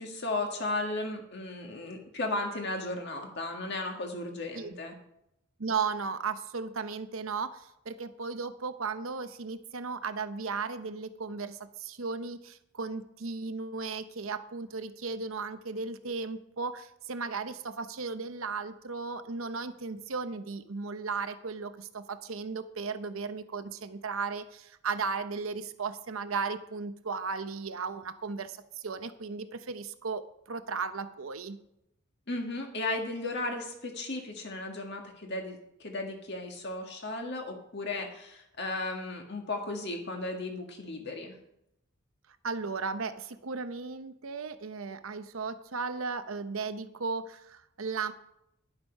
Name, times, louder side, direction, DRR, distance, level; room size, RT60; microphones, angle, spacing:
voice 1, 0.0-4.9 32.3-41.4, left 2 dB, 55° left, 2 dB, 1.9 m, -35 dB
voice 2, 5.6-31.6 42.4-48.1, right 4 dB, 75° right, 10 dB, 0.8 m, -35 dB
11.0 x 8.0 x 5.4 m, 0.80 s
head